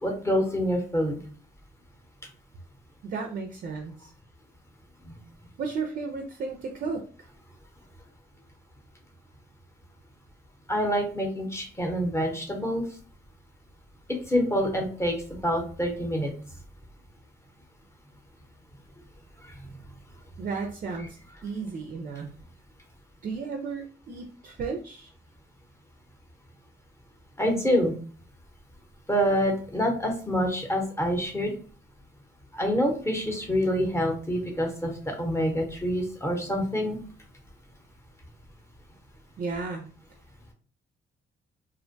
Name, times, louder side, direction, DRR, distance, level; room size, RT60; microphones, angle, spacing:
voice 1, 0.0-1.2 5.1-5.2 10.7-12.8 14.3-15.2 15.4-16.3 27.4-27.9 29.1-31.5 32.5-37.0, equal, 15° left, 2 dB, 0.8 m, -26 dB
voice 2, 3.0-4.1 5.6-7.0 20.4-21.2 21.4-22.3 23.2-25.1 39.4-39.9, right 4 dB, 45° right, 4 dB, 0.4 m, -34 dB
2.5 x 2.1 x 2.5 m, 0.42 s
cardioid pair, 90°, 20 cm